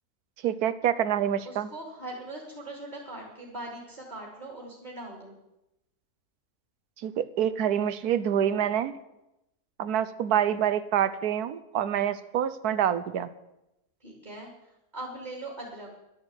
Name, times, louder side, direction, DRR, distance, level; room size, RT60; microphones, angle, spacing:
voice 1, 0.4-1.7 7.0-8.9 9.8-13.3, right 9 dB, 85° right, 14 dB, 1.3 m, -26 dB
voice 2, 1.4-5.4 14.0-15.9, right 1 dB, 30° right, -1 dB, 2.9 m, -41 dB
11.5 x 11.0 x 8.0 m, 0.90 s
omnidirectional pair, 1.6 m